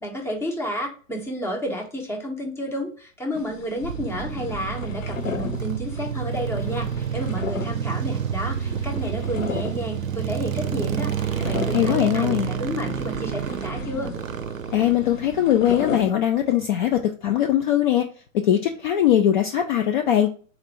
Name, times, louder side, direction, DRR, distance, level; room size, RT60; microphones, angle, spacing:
voice 1, 0.0-14.1, equal, 5° left, 1 dB, 0.8 m, -31 dB
sound 1, 3.3-16.1, left 6 dB, 70° left, 0.7 m, -36 dB
sound 2, 3.8-16.1, right 8 dB, 75° right, 0.5 m, -29 dB
voice 2, 11.7-12.5 14.7-18.1 18.3-20.3, left 11 dB, 40° left, 4 dB, 0.4 m, -21 dB
4.2 x 2.5 x 4.1 m, 0.39 s
figure-of-eight pair, 100°, 40 cm